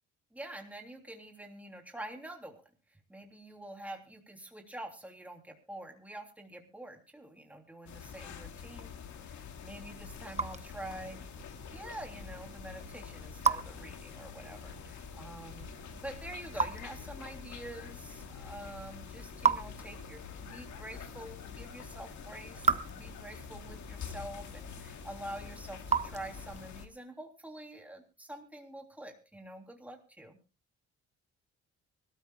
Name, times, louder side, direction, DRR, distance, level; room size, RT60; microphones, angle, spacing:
voice 1, 0.3-2.6 3.1-11.2 11.7-30.4, right 1 dB, 5° right, 3 dB, 3.2 m, -46 dB
sound 1, 7.9-26.9, left 7 dB, 70° left, 2.2 m, -46 dB
Raindrop / Drip, 9.6-26.8, right 5 dB, 20° right, 1.0 m, -38 dB
24.5 x 13.5 x 2.4 m, 0.32 s
cardioid pair, 90°, 30 cm